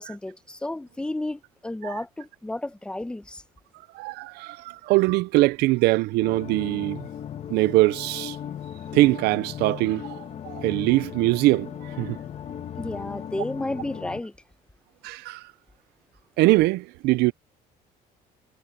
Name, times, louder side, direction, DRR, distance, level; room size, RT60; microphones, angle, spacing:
voice 1, 0.0-3.4 12.8-14.3, left 2 dB, 5° left, 0.9 m, -32 dB
voice 2, 3.9-7.1 7.5-8.4 8.9-12.2 15.0-15.4 16.4-17.3, right 20 dB, 85° right, 0.5 m, -22 dB
sound 1, 6.2-14.2, left 9 dB, 40° left, 1.4 m, -37 dB
cardioid pair, 145°, 16 cm